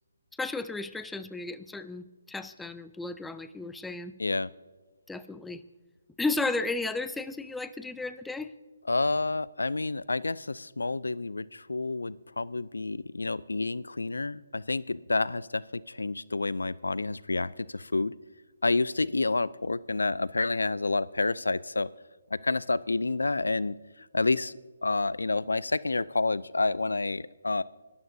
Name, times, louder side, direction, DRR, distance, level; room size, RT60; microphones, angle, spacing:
voice 1, 0.4-4.1 5.1-5.6 6.2-8.5, left 3 dB, 5° left, 13 dB, 0.4 m, -34 dB
voice 2, 8.9-18.1 18.6-21.9 22.4-23.7 24.1-27.6, left 3 dB, 90° left, 20 dB, 0.4 m, -29 dB
26.0 x 13.0 x 2.7 m, 1.2 s
figure-of-eight pair, 150°, 0 cm